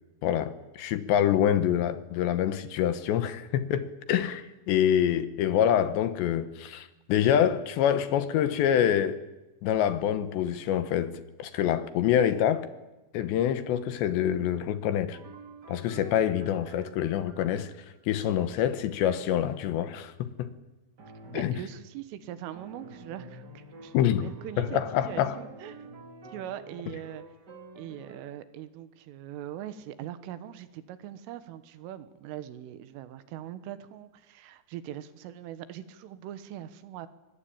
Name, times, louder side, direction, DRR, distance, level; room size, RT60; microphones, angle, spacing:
voice 1, 0.2-9.2 9.6-12.7 13.1-15.2 15.7-17.7 18.1-20.5 21.3-21.5 23.9-24.3 24.6-25.4, left 10 dB, 75° left, 3.0 m, -26 dB
sound 1, 15.1-18.2 21.0-21.8 22.5-28.3, right 2 dB, 60° right, 1.0 m, -48 dB
voice 2, 21.3-25.9 26.3-27.2 27.8-37.1, right 11 dB, 80° right, 3.9 m, -41 dB
24.5 x 21.5 x 8.7 m
omnidirectional pair, 5.7 m